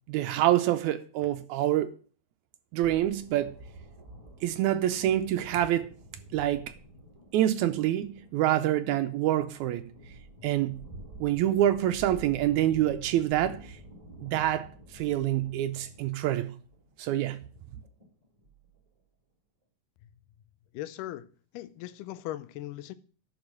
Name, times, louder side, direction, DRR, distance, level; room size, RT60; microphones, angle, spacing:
voice 1, 0.1-2.0 2.7-3.5 4.4-5.9 6.3-6.7 7.3-9.9 10.4-10.8 11.2-13.6 14.2-14.7 14.9-16.5 17.0-17.4, right 12 dB, 85° right, 1.7 m, -26 dB
sound 1, 2.8-19.0, right 1 dB, 30° right, 0.6 m, -49 dB
voice 2, 20.7-21.3 21.5-22.9, left 14 dB, 80° left, 2.1 m, -38 dB
11.5 x 4.5 x 6.2 m
omnidirectional pair, 3.9 m